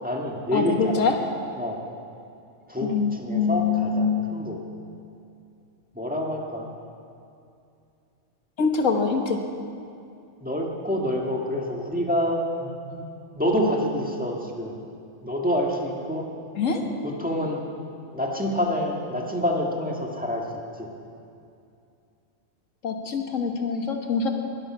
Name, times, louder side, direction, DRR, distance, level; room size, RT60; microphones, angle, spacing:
voice 1, 0.0-1.1 1.5-1.8 2.7-4.6 5.9-6.7 10.4-13.1 13.3-14.7 15.2-16.3 16.8-17.6 18.1-20.4 20.8-20.9, left 1 dB, 5° right, -1 dB, 1.5 m, -27 dB
voice 2, 0.5-1.1 2.8-4.1 8.6-9.4 16.5-16.8 22.8-24.3, left 5 dB, 90° left, 3 dB, 1.7 m, -24 dB
20.5 x 9.0 x 6.1 m, 2.6 s
omnidirectional pair, 1.3 m